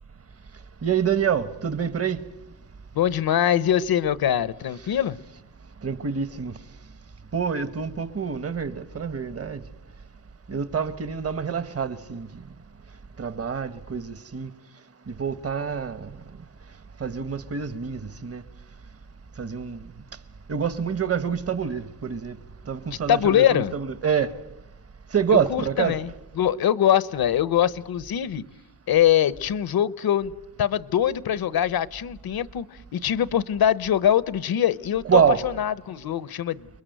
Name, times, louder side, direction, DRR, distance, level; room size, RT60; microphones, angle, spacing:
voice 1, 0.8-2.2 5.8-6.5 7.3-9.6 10.5-12.3 13.2-14.5 15.1-16.1 17.0-18.4 19.4-19.8 20.5-22.4 22.7-24.3 25.1-26.0 35.0-35.4, right 7 dB, 40° right, 1.2 m, -26 dB
voice 2, 2.9-5.2 22.9-23.7 25.3-28.4 28.9-30.3 30.6-32.7 32.9-36.7, left 10 dB, 75° left, 1.0 m, -23 dB
30.0 x 21.5 x 9.2 m
wide cardioid pair, 140°, 37 cm